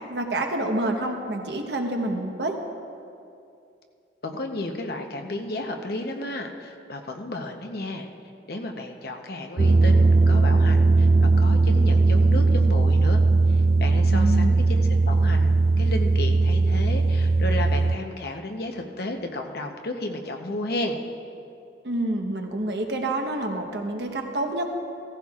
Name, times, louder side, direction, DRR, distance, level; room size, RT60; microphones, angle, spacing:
voice 1, 0.1-2.6 14.1-14.6 21.8-24.7, right 1 dB, 65° right, 3 dB, 1.1 m, -28 dB
voice 2, 4.2-8.1 8.5-13.2 13.5-21.0, left 2 dB, 60° left, 3 dB, 0.8 m, -33 dB
sound 1, 9.6-18.0, right 3 dB, 35° right, 0.3 m, -19 dB
16.0 x 14.5 x 2.4 m, 2.5 s
head